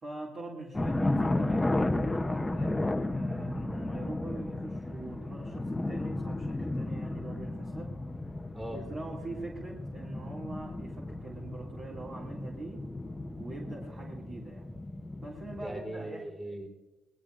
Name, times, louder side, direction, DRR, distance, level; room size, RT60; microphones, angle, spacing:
voice 1, 0.0-8.0 8.7-12.9 13.4-14.7 15.2-16.3, right 2 dB, 45° right, -2 dB, 2.3 m, -43 dB
sound 1, 0.7-15.8, left 2 dB, 15° left, 0.7 m, -34 dB
voice 2, 15.6-16.7, right 1 dB, 25° right, 1 dB, 3.8 m, -39 dB
22.0 x 19.0 x 2.5 m, 1.1 s
cardioid pair, 90°, 0 cm